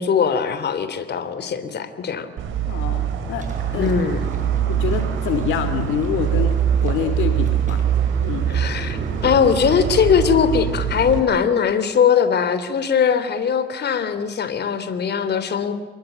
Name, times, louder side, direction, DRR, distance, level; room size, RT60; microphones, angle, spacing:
voice 1, 0.0-2.3 3.8-4.2 8.5-15.7, left 7 dB, 55° left, 11 dB, 3.3 m, -20 dB
sound 1, 2.4-11.2, right 9 dB, 80° right, 5.6 m, -23 dB
voice 2, 2.7-3.5 3.7-3.9 4.7-7.8 8.2-8.5, left 9 dB, 90° left, 10 dB, 2.7 m, -26 dB
sound 2, 3.4-10.1, right 3 dB, 40° right, 7.9 m, -42 dB
27.5 x 22.0 x 9.3 m, 1.3 s
cardioid pair, 90°, 20 cm